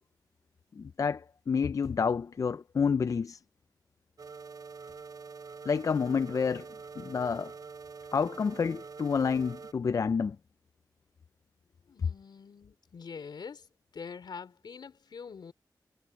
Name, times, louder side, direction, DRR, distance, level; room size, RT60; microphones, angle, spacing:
voice 1, 0.8-3.4 5.7-6.7 7.0-7.5 8.1-10.4, left 6 dB, 50° left, 0.4 m, -29 dB
sound 1, 4.2-9.7, right 5 dB, 55° right, 5.6 m, -46 dB
voice 2, 11.9-13.7 13.9-15.5, left 6 dB, 80° left, 3.7 m, -44 dB
wide cardioid pair, 100°, 7 cm